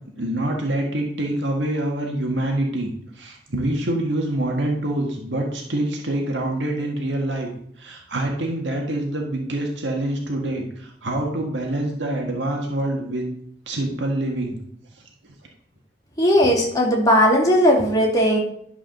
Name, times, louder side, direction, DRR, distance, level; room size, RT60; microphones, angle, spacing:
voice 1, 0.2-7.5 7.8-13.3 13.7-14.6, right 1 dB, 85° right, 1 dB, 1.7 m, -26 dB
voice 2, 16.2-18.4, equal, 20° left, -2 dB, 2.7 m, -17 dB
11.5 x 5.0 x 6.5 m, 0.69 s
head